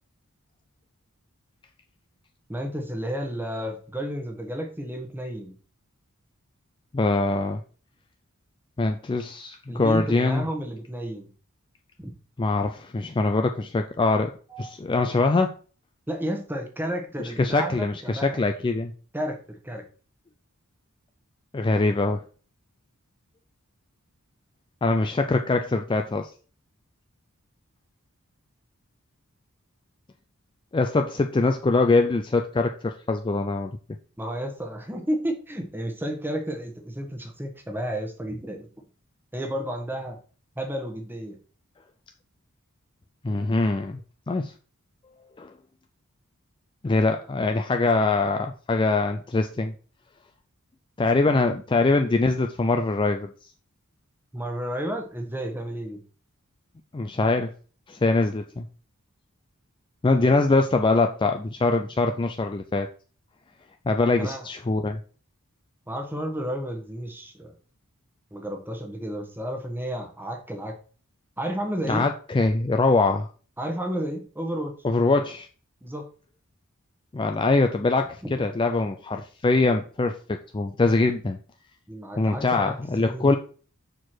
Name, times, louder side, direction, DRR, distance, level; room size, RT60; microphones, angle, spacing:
voice 1, 2.5-5.6 9.7-11.3 12.0-12.1 14.5-14.7 16.1-18.4 19.1-19.8 34.2-38.7 39.3-40.2 40.5-41.4 54.3-56.0 64.2-64.5 65.9-67.5 68.3-70.8 71.4-72.1 73.6-74.8 75.8-76.1 78.2-78.3 81.9-83.4, equal, 10° right, 3 dB, 1.2 m, -32 dB
voice 2, 6.9-7.6 8.8-10.4 12.4-14.3 14.6-15.5 17.2-18.9 21.5-22.2 24.8-26.3 30.7-33.7 43.2-44.0 44.3-44.5 45.4-45.5 46.8-49.7 51.0-53.3 56.9-57.5 57.9-58.6 60.0-62.9 63.9-65.0 71.9-73.3 74.8-75.5 77.1-81.4 82.2-83.3, left 3 dB, 20° left, 5 dB, 0.4 m, -23 dB
6.3 x 4.7 x 4.4 m, 0.39 s
head